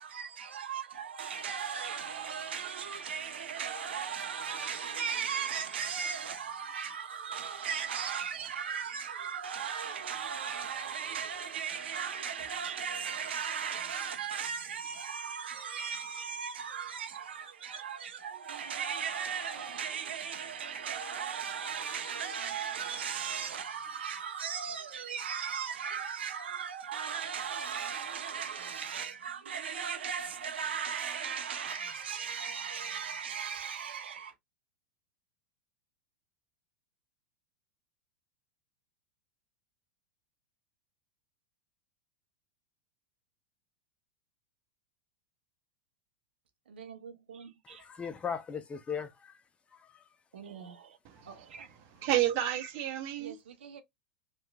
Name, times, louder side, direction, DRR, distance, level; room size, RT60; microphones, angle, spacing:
voice 1, 0.0-34.3 46.7-47.8 50.3-51.0 51.3-51.7 53.2-53.8, right 7 dB, 75° right, 0.6 m, -37 dB
voice 2, 47.6-49.4 49.7-50.0 51.2-51.3, left 7 dB, 20° left, 0.5 m, -38 dB
voice 3, 51.0-53.4, right 12 dB, 50° right, 0.8 m, -32 dB
2.9 x 2.3 x 2.3 m
hypercardioid pair, 95°, 6 cm